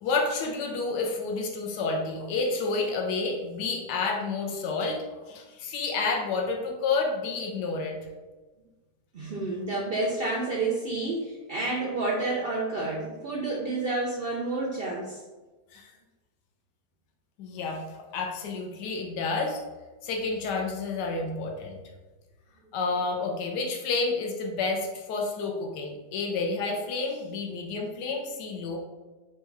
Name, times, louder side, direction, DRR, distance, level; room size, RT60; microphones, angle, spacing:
voice 1, 0.0-8.0 15.7-15.9 17.4-17.8 18.1-19.6 20.0-21.8 22.7-28.8, left 3 dB, 85° left, 1 dB, 1.3 m, -30 dB
voice 2, 9.1-15.2, right 2 dB, 85° right, -3 dB, 0.5 m, -29 dB
4.5 x 2.3 x 4.5 m, 1.2 s
omnidirectional pair, 1.8 m